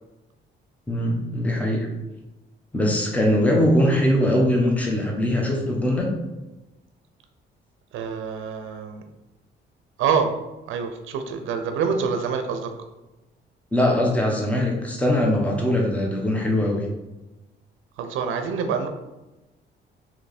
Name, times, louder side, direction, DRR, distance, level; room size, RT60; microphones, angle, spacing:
voice 1, 0.9-1.9 2.7-6.1 13.7-16.8, left 1 dB, 5° left, -1 dB, 0.9 m, -21 dB
voice 2, 7.9-9.0 10.0-10.3 10.7-12.7 18.0-18.9, right 6 dB, 85° right, 6 dB, 0.5 m, -26 dB
3.2 x 3.0 x 4.1 m, 1.0 s
cardioid pair, 90°, 20 cm